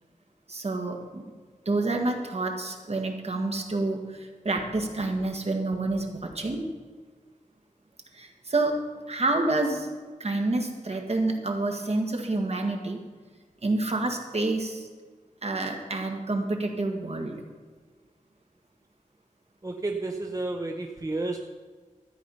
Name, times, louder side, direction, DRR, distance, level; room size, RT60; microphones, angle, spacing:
voice 1, 0.5-1.2 1.7-6.7 8.1-8.8 9.1-9.9 10.2-13.0 13.6-14.9 15.4-17.4, right 2 dB, 50° right, 2 dB, 1.7 m, -28 dB
voice 2, 19.6-21.4, right 2 dB, 25° right, 3 dB, 0.8 m, -31 dB
13.5 x 8.4 x 5.6 m, 1.4 s
wide cardioid pair, 90°, 14 cm